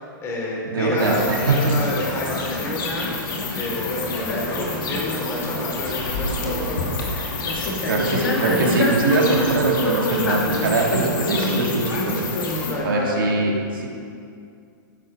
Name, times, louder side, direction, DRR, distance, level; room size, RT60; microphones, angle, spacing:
voice 1, 0.0-2.9 3.4-6.9 12.7-13.2, left 1 dB, 25° left, -3 dB, 3.6 m, -29 dB
voice 2, 0.7-1.8 7.8-12.2 12.8-13.9, right 3 dB, 85° right, -1 dB, 2.8 m, -22 dB
sound 1, 1.0-12.7, left 2 dB, 75° left, 2.8 m, -26 dB
13.0 x 11.0 x 5.2 m, 2.4 s
hypercardioid pair, 140°, 11 cm